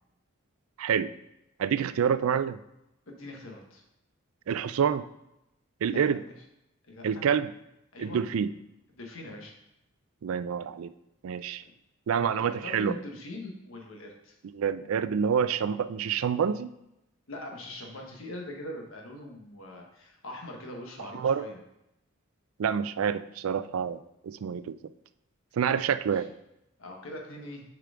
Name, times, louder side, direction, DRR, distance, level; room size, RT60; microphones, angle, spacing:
voice 1, 0.8-1.1 1.6-2.6 4.5-5.0 5.8-6.2 7.0-7.5 8.0-8.5 10.2-10.9 11.2-11.6 12.1-12.9 14.5-16.7 21.1-21.4 22.6-24.8 25.6-26.3, right 7 dB, 85° right, 13 dB, 0.4 m, -27 dB
voice 2, 3.1-3.8 5.9-6.4 6.9-7.3 7.9-8.2 8.9-9.6 12.1-14.4 17.3-21.6 26.1-26.2 26.8-27.6, left 1 dB, 80° left, 1 dB, 1.3 m, -42 dB
6.8 x 4.8 x 3.7 m, 0.86 s
head